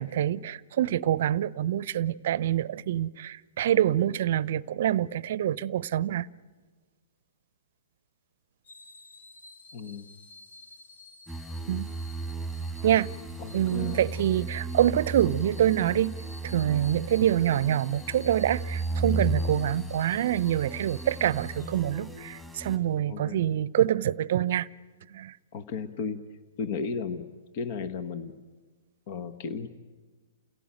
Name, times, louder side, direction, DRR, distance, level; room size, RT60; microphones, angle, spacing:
voice 1, 0.0-6.3 11.7-11.9 12.8-13.1 13.5-16.1 16.4-24.7 25.1-25.3, right 11 dB, 60° right, 0.6 m, -26 dB
sound 1, 8.6-22.3 22.8-23.0, left 3 dB, 80° left, 2.4 m, -51 dB
voice 2, 9.7-10.1 13.4-14.1 23.1-23.4 25.5-26.2 26.6-28.4 29.1-29.7, left 5 dB, 50° left, 1.3 m, -34 dB
sound 2, 11.3-22.8, right 2 dB, 5° left, 2.5 m, -35 dB
29.5 x 17.0 x 9.1 m
hypercardioid pair, 120°, 0 cm